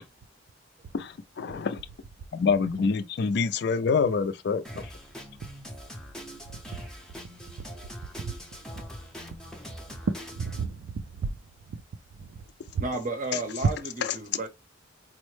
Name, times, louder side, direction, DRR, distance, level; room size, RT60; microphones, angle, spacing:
voice 1, 0.9-1.8 2.3-4.9, left 5 dB, 60° left, 0.4 m, -26 dB
Drum kit, 4.6-10.6, equal, 5° left, 0.5 m, -43 dB
voice 2, 7.6-8.3 8.7-8.8 10.1-11.4 11.7-11.8 12.2-12.4 12.7-12.8, right 5 dB, 90° right, 0.4 m, -34 dB
voice 3, 12.8-14.5, right 2 dB, 40° right, 0.6 m, -32 dB
4.2 x 2.1 x 3.1 m
head